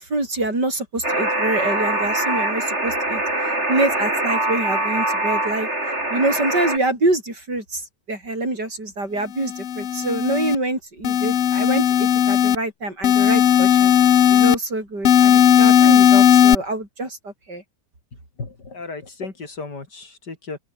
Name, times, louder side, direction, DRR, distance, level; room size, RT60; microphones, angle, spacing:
voice 1, 0.0-3.2 3.7-5.7 6.1-7.8 8.1-13.9 14.3-17.6, right 2 dB, 85° right, 8.3 m, -25 dB
Alarm, 1.0-6.8, right 1 dB, 40° right, 6.9 m, -23 dB
sound 1, 9.4-10.5 11.0-12.6 13.0-14.5 15.0-16.5, left 9 dB, 55° left, 1.2 m, -15 dB
voice 2, 18.4-20.6, left 3 dB, 85° left, 4.4 m, -34 dB
omnidirectional pair, 1.8 m